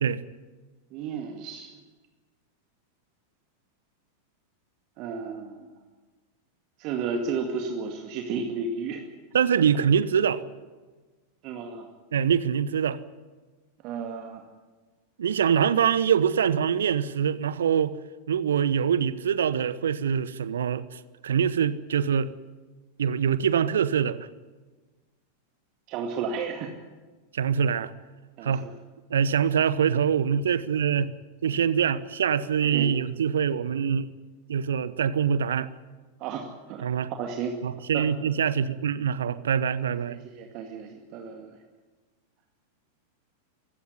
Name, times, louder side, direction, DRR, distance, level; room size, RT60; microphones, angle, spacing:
voice 1, 0.9-1.7 5.0-5.7 6.8-9.0 11.4-11.9 13.8-14.4 25.9-26.7 28.4-28.7 32.7-32.9 36.2-36.8 37.2-37.5 37.9-38.0 40.1-41.6, right 5 dB, 40° right, 2.2 m, -33 dB
voice 2, 9.3-10.4 12.1-13.0 15.2-17.9 18.3-22.3 23.0-24.3 27.3-27.9 28.4-28.6 29.1-31.1 31.4-34.1 34.5-35.7 36.8-37.1 37.6-40.2, right 8 dB, 65° right, 0.9 m, -24 dB
24.0 x 15.5 x 9.7 m
figure-of-eight pair, 90°, 0 cm